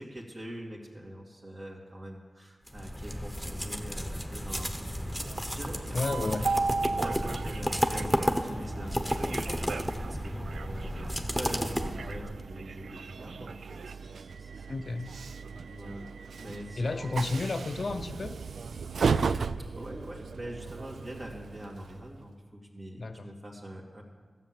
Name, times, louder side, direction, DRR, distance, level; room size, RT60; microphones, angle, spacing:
voice 1, 0.0-6.3 7.0-14.7 15.1-15.3 15.7-16.1 16.4-17.5 19.7-24.0, equal, 45° right, -2 dB, 2.3 m, -44 dB
sound 1, 2.7-12.4, equal, ahead, 1.2 m, -32 dB
Train, 5.0-22.2, right 4 dB, 90° right, 0.3 m, -36 dB
voice 2, 5.9-6.5 14.7-15.1 16.8-18.4 23.0-23.3, left 3 dB, 60° left, 9 dB, 0.6 m, -31 dB
13.0 x 7.6 x 7.5 m, 1.4 s
cardioid pair, 50°, 0 cm